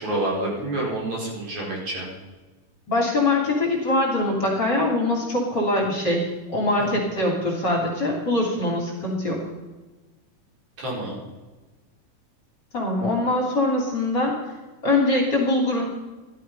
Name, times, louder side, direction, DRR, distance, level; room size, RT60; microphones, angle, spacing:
voice 1, 0.0-2.1 6.8-6.9 10.8-11.2, right 1 dB, 65° right, -4 dB, 6.3 m, -28 dB
voice 2, 2.9-9.4 12.7-14.3 14.8-15.8, left 2 dB, 35° left, -1 dB, 3.4 m, -23 dB
14.5 x 13.0 x 5.5 m, 1.2 s
omnidirectional pair, 3.6 m